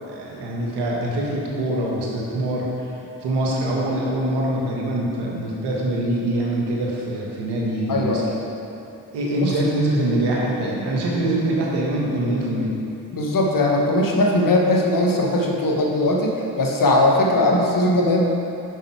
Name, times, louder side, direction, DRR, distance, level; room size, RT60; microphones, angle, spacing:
voice 1, 0.0-2.9 3.2-8.2 9.1-12.8, right 1 dB, 85° right, -3 dB, 1.3 m, -24 dB
voice 2, 7.9-8.2 9.4-9.5 13.1-18.3, left 1 dB, 55° left, 0 dB, 1.3 m, -19 dB
6.4 x 5.3 x 4.7 m, 2.9 s
supercardioid pair, 45°, 40 cm